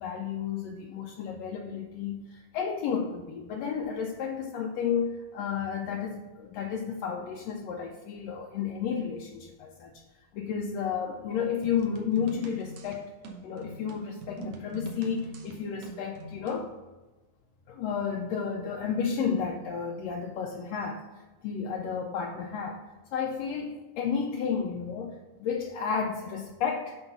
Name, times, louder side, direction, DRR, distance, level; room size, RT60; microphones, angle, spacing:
voice 1, 0.0-10.0 10.3-13.1 13.4-16.7 17.7-21.0 21.4-22.8 23.1-27.0, left 6 dB, 80° left, 1 dB, 1.6 m, -32 dB
sound 1, 11.6-16.7, right 3 dB, 65° right, 1.9 m, -42 dB
8.1 x 3.8 x 5.7 m, 1.2 s
omnidirectional pair, 3.4 m